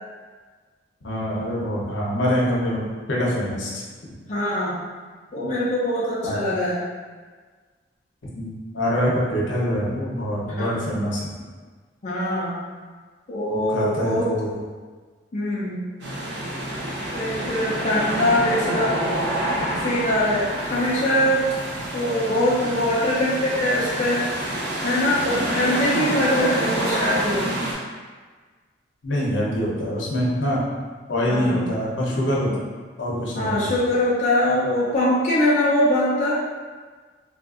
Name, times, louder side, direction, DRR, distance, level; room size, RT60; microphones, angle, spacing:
voice 1, 1.0-3.8 6.2-6.4 8.2-11.3 13.5-14.6 29.0-30.6 31.1-32.5 33.0-33.6, equal, 85° left, -5 dB, 0.8 m, -25 dB
voice 2, 4.3-4.8 5.3-6.8 10.6-10.7 12.0-12.6 13.3-14.3 15.3-15.8 17.1-19.0 19.8-21.4 21.9-24.3 24.8-27.5 31.3-31.6 32.5-32.6 33.3-36.4, left 1 dB, 40° left, -7 dB, 0.5 m, -22 dB
sound 1, 16.0-27.7, right 1 dB, 70° right, 0.8 m, -27 dB
3.6 x 2.4 x 2.4 m, 1.5 s
head